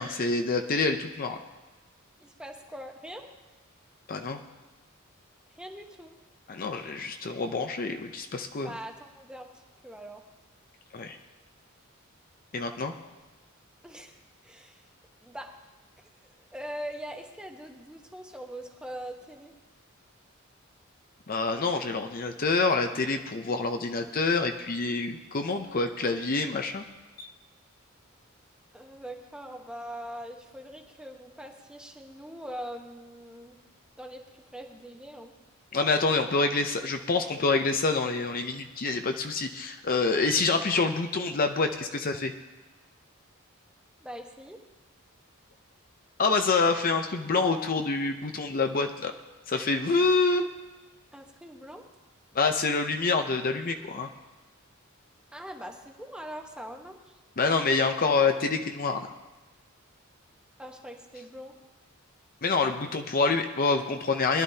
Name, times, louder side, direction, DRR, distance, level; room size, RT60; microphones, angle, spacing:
voice 1, 0.0-1.4 4.1-4.4 6.5-8.7 10.9-11.2 12.5-12.9 21.3-26.8 27.2-27.3 35.7-42.3 46.2-49.1 49.5-50.5 52.3-54.1 57.4-59.1 62.4-64.4, left 3 dB, 45° left, 6 dB, 0.7 m, -27 dB
voice 2, 2.2-3.3 5.6-6.1 8.6-9.5 9.8-10.2 13.8-14.8 15.2-15.6 16.2-19.5 28.7-33.6 34.0-34.2 34.5-35.3 44.0-44.6 51.1-51.8 55.3-57.2 60.6-61.5, equal, 5° right, 2 dB, 1.1 m, -42 dB
21.5 x 11.5 x 2.8 m, 1.2 s
head